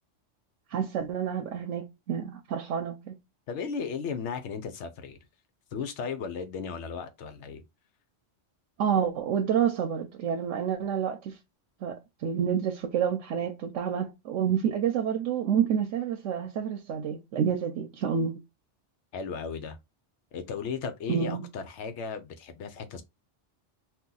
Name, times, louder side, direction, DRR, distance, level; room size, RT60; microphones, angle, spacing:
voice 1, 0.7-3.2 8.8-11.4 11.8-18.4 21.1-21.5, right 8 dB, 90° right, 0.9 m, -28 dB
voice 2, 3.5-5.2 5.7-7.6 19.1-19.8 20.3-23.0, left 5 dB, 70° left, 1.0 m, -35 dB
2.8 x 2.4 x 3.7 m
omnidirectional pair, 1.2 m